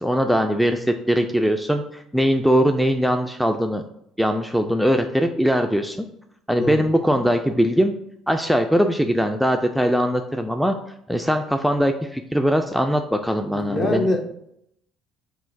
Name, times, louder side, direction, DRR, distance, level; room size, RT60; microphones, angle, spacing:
voice 1, 0.0-3.8 4.2-6.1 6.5-7.9 8.3-10.8 11.1-14.1, equal, ahead, 5 dB, 0.3 m, -21 dB
voice 2, 13.5-14.2, left 2 dB, 40° left, 2 dB, 0.9 m, -23 dB
5.5 x 2.4 x 2.6 m, 0.73 s
hypercardioid pair, 60°, 0 cm